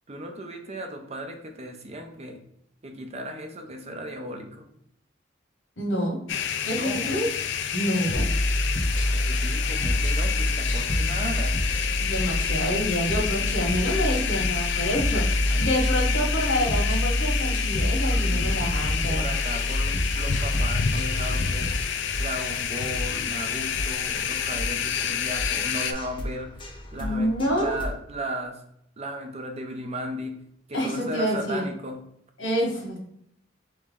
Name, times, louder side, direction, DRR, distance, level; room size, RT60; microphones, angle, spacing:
voice 1, 0.1-2.4 2.8-4.7 6.7-7.1 9.1-11.6 15.5-15.6 18.1-18.6 19.1-21.8 22.1-26.5 26.9-28.6 29.0-30.4 30.7-32.0, right 1 dB, 35° right, 4 dB, 0.6 m, -36 dB
voice 2, 5.8-6.2 6.6-7.3 7.7-8.3 12.0-19.2 27.0-27.8 30.7-31.7 32.4-33.0, equal, 85° left, 0 dB, 1.5 m, -27 dB
Summer Morning, 6.3-25.9, left 8 dB, 65° left, 0.4 m, -29 dB
sound 1, 8.1-21.8, left 1 dB, 45° left, 0.9 m, -27 dB
sound 2, 9.6-28.0, left 1 dB, 25° left, 0.7 m, -37 dB
4.2 x 3.1 x 3.7 m, 0.72 s
head